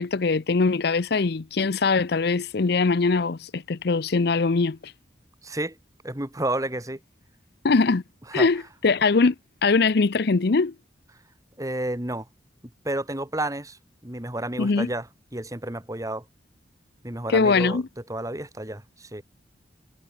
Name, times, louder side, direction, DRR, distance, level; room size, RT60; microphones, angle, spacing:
voice 1, 0.0-4.9 7.6-8.0 8.3-9.3 9.6-10.7 14.6-14.9 17.3-17.9, left 4 dB, 60° left, 0.6 m, -22 dB
voice 2, 5.4-5.8 6.0-7.0 8.3-8.5 11.6-12.3 12.8-15.1 15.3-16.2 17.0-17.8 18.1-19.2, right 1 dB, 20° right, 2.2 m, -31 dB
head